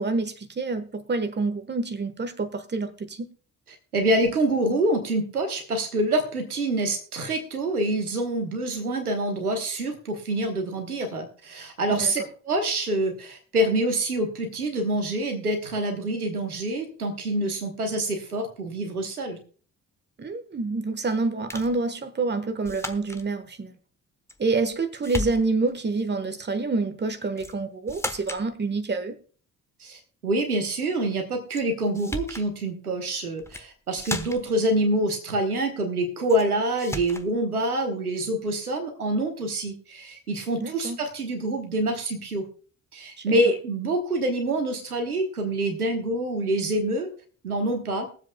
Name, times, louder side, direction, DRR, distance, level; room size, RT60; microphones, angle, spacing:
voice 1, 0.0-3.3 11.9-12.1 20.2-23.7 24.4-29.2 40.6-41.0 43.2-43.4, right 3 dB, 25° right, 1.3 m, -27 dB
voice 2, 3.9-19.4 29.8-42.5 42.9-47.1 47.4-48.1, right 1 dB, 90° right, 1.2 m, -26 dB
sound 1, 21.5-21.8 22.6-23.3 24.3-24.8 25.0-25.7 27.4-27.6 27.9-28.5 31.5-31.6 31.9-32.5 33.4-33.7 34.0-34.6 36.3-36.5 36.8-37.3, left 2 dB, 5° left, 1.0 m, -34 dB
22.0 x 7.6 x 2.2 m
figure-of-eight pair, 40°, 44 cm